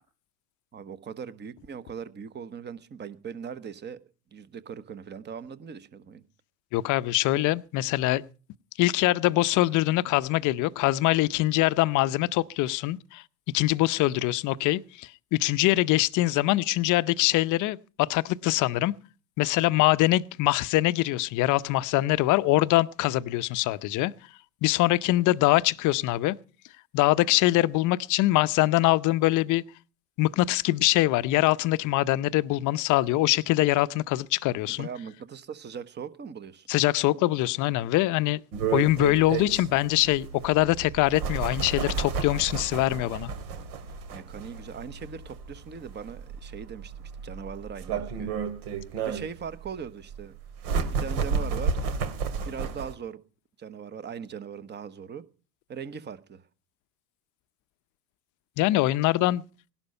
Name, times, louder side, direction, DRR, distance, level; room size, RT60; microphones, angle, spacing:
voice 1, 0.7-4.0 4.3-6.2 34.7-36.7 43.0-43.3 44.1-46.9 47.2-48.4 49.0-50.3 51.0-51.8 52.4-53.2 53.6-55.3 55.7-56.4, right 7 dB, 20° right, 1.1 m, -40 dB
voice 2, 6.7-8.2 8.8-13.2 13.5-18.9 19.4-24.1 24.6-26.4 26.9-29.6 30.2-34.9 36.7-38.4 38.7-43.3 58.6-59.4, left 17 dB, 40° left, 0.7 m, -23 dB
sound 1, 38.5-52.9, right 6 dB, 65° right, 2.6 m, -32 dB
17.5 x 11.5 x 5.5 m
hypercardioid pair, 105°, 48 cm